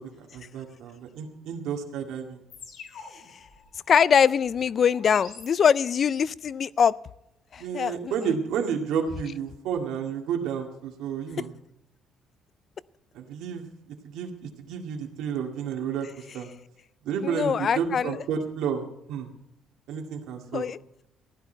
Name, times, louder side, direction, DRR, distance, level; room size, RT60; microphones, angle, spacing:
voice 1, 0.0-2.4 7.6-11.5 13.1-16.5 17.0-19.3 19.9-20.6, right 7 dB, 90° right, 2 dB, 2.0 m, -31 dB
sound 1, 2.5-6.2, left 5 dB, 60° left, 3.4 m, -47 dB
voice 2, 3.9-7.0 7.5-8.3 17.2-18.1 20.5-20.8, left 7 dB, 40° left, 20 dB, 0.4 m, -23 dB
15.5 x 11.0 x 4.5 m, 0.83 s
cardioid pair, 140°, 0 cm